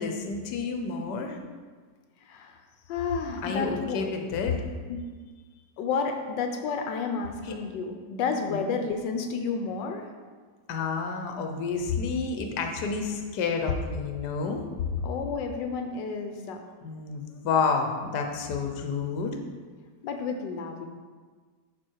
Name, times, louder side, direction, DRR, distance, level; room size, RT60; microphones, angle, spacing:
voice 1, 0.0-1.4 3.4-4.6 7.4-7.6 8.5-8.6 10.7-14.6 16.8-19.4, left 5 dB, 70° left, 4 dB, 1.4 m, -29 dB
voice 2, 2.3-2.6 2.9-4.2 4.9-5.0 5.8-10.1 15.0-16.6 20.0-20.9, left 5 dB, 90° left, 5 dB, 1.4 m, -31 dB
11.0 x 4.6 x 4.6 m, 1.5 s
omnidirectional pair, 1.9 m